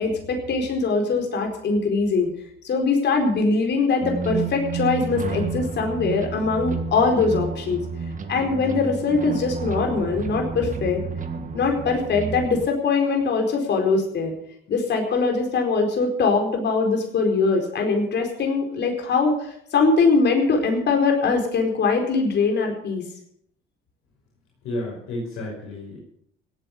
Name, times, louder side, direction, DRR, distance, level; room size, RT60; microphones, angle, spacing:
voice 1, 0.0-2.3 2.6-7.8 8.3-11.0 11.5-14.3 14.7-19.3 19.7-23.0, left 4 dB, 55° left, 3 dB, 4.5 m, -22 dB
sound 1, 4.0-12.7, right 5 dB, 40° right, 1.7 m, -30 dB
voice 2, 24.6-26.0, left 1 dB, 80° left, -2 dB, 5.5 m, -31 dB
17.0 x 9.1 x 7.1 m, 0.69 s
cardioid pair, 110°, 21 cm